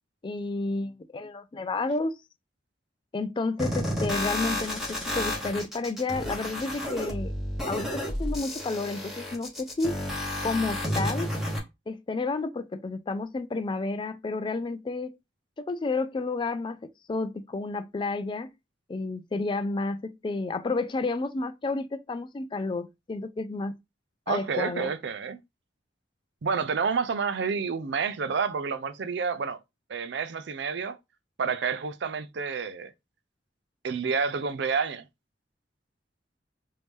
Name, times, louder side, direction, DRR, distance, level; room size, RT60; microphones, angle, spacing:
voice 1, 0.2-2.2 3.1-7.3 7.7-10.0 10.4-11.3 11.9-15.2 15.6-18.5 18.9-23.7 24.3-24.9, left 3 dB, 25° left, 0.3 m, -31 dB
sound 1, 3.6-11.6, left 1 dB, ahead, 1.1 m, -31 dB
voice 2, 24.3-25.4 26.4-29.6 29.9-31.0 31.4-32.9 33.8-35.0, right 5 dB, 70° right, 0.5 m, -29 dB
3.2 x 2.7 x 3.5 m
head